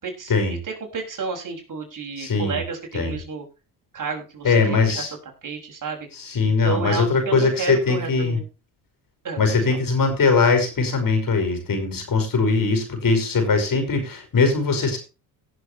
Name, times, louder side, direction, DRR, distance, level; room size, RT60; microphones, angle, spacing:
voice 1, 0.0-3.4 3.9-5.0 5.4-6.1 6.6-8.5 9.2-9.4 9.7-9.8, right 5 dB, 45° right, 1 dB, 6.1 m, -31 dB
voice 2, 2.2-2.6 2.9-3.2 4.4-5.1 6.2-8.4 9.4-15.0, left 4 dB, 45° left, 6 dB, 5.6 m, -21 dB
17.5 x 7.7 x 3.2 m, 0.30 s
supercardioid pair, 70°, 45 cm